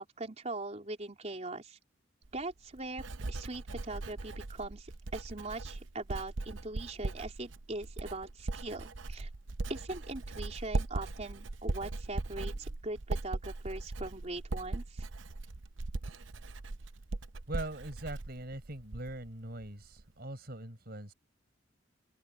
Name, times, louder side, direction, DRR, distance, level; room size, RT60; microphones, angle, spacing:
voice 1, 0.0-1.8 2.3-9.3 9.7-15.0, right 2 dB, 35° right, 3.7 m, -41 dB
Writing, 2.2-19.3 19.6-20.0, right 2 dB, 80° right, 0.8 m, -39 dB
voice 2, 17.5-21.1, right 1 dB, 55° right, 5.2 m, -42 dB
open air
head